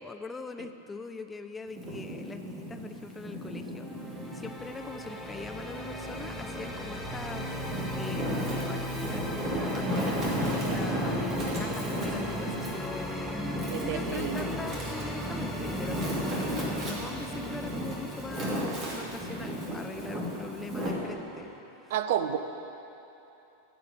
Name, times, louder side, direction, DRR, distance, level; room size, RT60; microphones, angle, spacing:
voice 1, 0.0-3.9 4.3-21.5 21.8-21.9, left 4 dB, 15° left, 7 dB, 0.5 m, -42 dB
Wind, 1.7-4.5 5.0-6.3 6.9-20.9, right 1 dB, 30° right, 2.7 m, -35 dB
sound 1, 3.8-21.6, equal, 5° right, 1.2 m, -37 dB
voice 2, 13.7-14.4 21.9-22.4, right 10 dB, 55° right, 9 dB, 0.6 m, -30 dB
15.0 x 5.1 x 7.8 m, 3.0 s
figure-of-eight pair, 90°, 0 cm